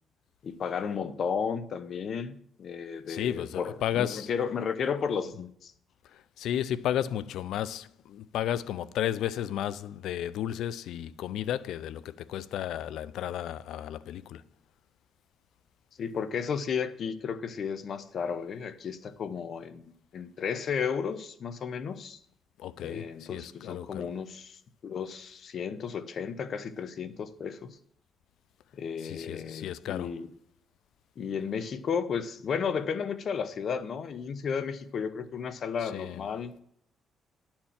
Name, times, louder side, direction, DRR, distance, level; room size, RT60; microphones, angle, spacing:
voice 1, 0.4-5.7 16.0-22.2 22.8-27.8 28.7-30.3 31.2-36.6, left 6 dB, 55° left, 0.8 m, -33 dB
voice 2, 3.1-4.3 6.1-14.4 22.6-24.1 29.0-30.2 35.8-36.2, left 11 dB, 80° left, 0.4 m, -33 dB
11.5 x 4.4 x 7.4 m
cardioid pair, 90°, 0 cm